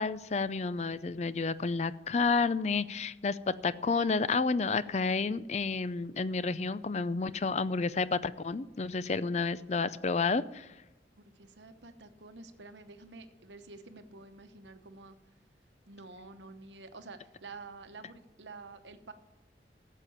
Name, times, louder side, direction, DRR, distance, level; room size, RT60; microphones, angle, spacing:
voice 1, 0.0-3.4 3.6-10.7, left 4 dB, 40° left, 16 dB, 0.5 m, -30 dB
voice 2, 11.2-15.2 15.9-19.1, right 3 dB, 90° right, 8 dB, 1.0 m, -49 dB
13.0 x 7.6 x 7.1 m, 1.0 s
head